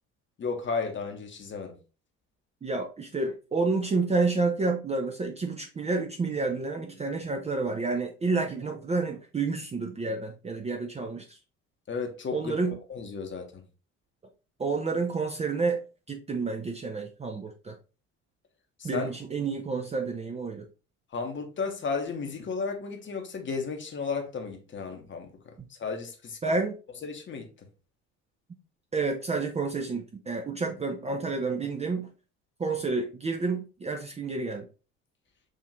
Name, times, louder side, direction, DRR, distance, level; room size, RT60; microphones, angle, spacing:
voice 1, 0.4-1.8 11.9-12.5 12.9-13.6 18.8-19.1 21.1-25.3 25.7-26.4 27.0-27.5, left 5 dB, 30° left, 1.0 m, -33 dB
voice 2, 2.6-11.4 12.3-12.8 14.6-15.8 16.1-17.7 18.8-20.7 26.4-26.8 28.9-32.1 32.6-34.7, right 3 dB, 15° right, 0.6 m, -29 dB
6.3 x 2.7 x 2.6 m
figure-of-eight pair, 55°, 38 cm